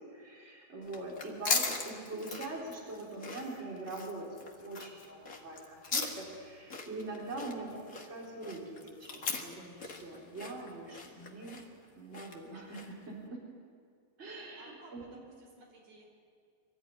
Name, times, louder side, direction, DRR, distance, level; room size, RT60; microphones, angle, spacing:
voice 1, 0.1-4.3 4.6-11.6 11.9-13.4 14.2-15.0, right 2 dB, 15° right, -3 dB, 3.9 m, -43 dB
sound 1, 0.8-13.1, left 4 dB, 80° left, 0.7 m, -39 dB
voice 2, 14.3-16.2, right 2 dB, 55° right, 0 dB, 5.9 m, -57 dB
25.0 x 14.0 x 9.8 m, 2.1 s
omnidirectional pair, 4.6 m